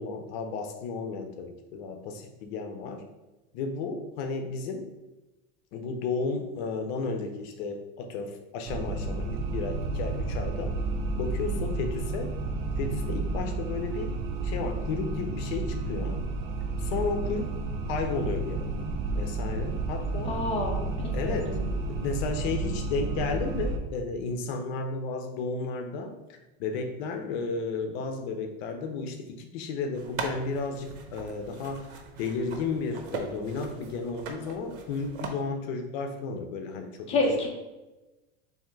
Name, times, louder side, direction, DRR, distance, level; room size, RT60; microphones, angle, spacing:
voice 1, 0.0-3.0 3.5-4.9 5.7-10.8 11.1-12.3 12.8-16.3 16.8-17.5 17.9-18.9 19.1-20.4 21.1-21.6 21.9-37.5, left 4 dB, 65° left, 5 dB, 0.6 m, -33 dB
sound 1, 8.7-23.8, right 3 dB, 40° right, 0.5 m, -31 dB
voice 2, 20.2-20.9 21.3-21.6 37.1-37.5, left 2 dB, 20° left, -1 dB, 0.7 m, -28 dB
sound 2, 29.9-35.3, right 5 dB, 85° right, 0.8 m, -40 dB
3.5 x 2.6 x 4.4 m, 1.1 s
supercardioid pair, 155°, 32 cm